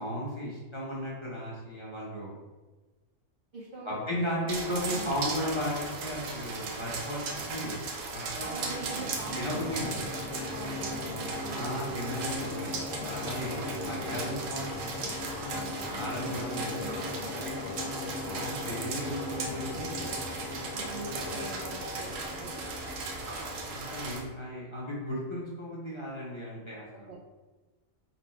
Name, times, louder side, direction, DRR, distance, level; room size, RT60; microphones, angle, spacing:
voice 1, 0.0-2.3 3.8-7.8 8.1-9.1 9.3-10.0 11.5-12.8 13.0-15.1 15.8-16.7 18.2-20.2 23.7-27.1, equal, 25° left, -7 dB, 0.7 m, -36 dB
voice 2, 3.5-4.5 4.9-5.1 8.4-9.8 10.5-11.8 15.5-15.9 16.2-16.4 16.7-17.4 20.7-22.5 27.1-27.2, right 3 dB, 60° right, -5 dB, 0.6 m, -43 dB
sound 1, 4.5-24.2, right 3 dB, 75° right, 1.0 m, -37 dB
sound 2, 8.6-24.0, left 3 dB, 80° left, 1.0 m, -39 dB
4.2 x 2.3 x 4.3 m, 1.2 s
omnidirectional pair, 1.4 m